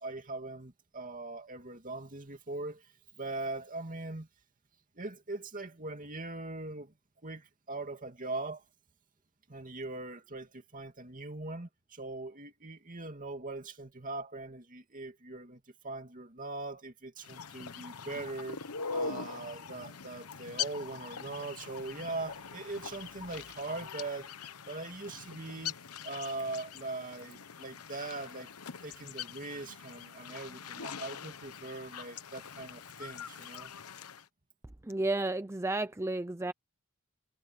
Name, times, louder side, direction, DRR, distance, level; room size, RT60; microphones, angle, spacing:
voice 1, 0.0-2.9 3.2-4.3 5.0-6.9 7.2-8.6 9.5-18.6 18.9-24.3 24.7-25.8 26.0-28.5 28.8-33.7, right 2 dB, 40° right, 2.6 m, -41 dB
sound 1, 17.2-34.2, left 6 dB, 85° left, 1.0 m, -43 dB
voice 2, 34.9-36.5, right 2 dB, 10° right, 0.5 m, -32 dB
head